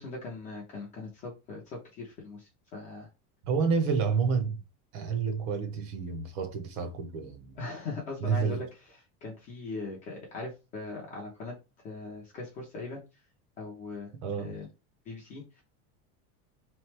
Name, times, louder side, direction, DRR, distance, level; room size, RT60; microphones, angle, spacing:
voice 1, 0.0-3.1 7.6-8.7 9.2-11.6 11.8-13.0 13.6-14.1 14.4-14.7 15.1-15.6, left 3 dB, 20° left, 0.3 m, -40 dB
voice 2, 3.4-4.6 4.9-7.6 8.2-8.6 14.2-14.6, right 5 dB, 40° right, 0.6 m, -29 dB
3.4 x 3.1 x 3.2 m
cardioid pair, 175°, 43 cm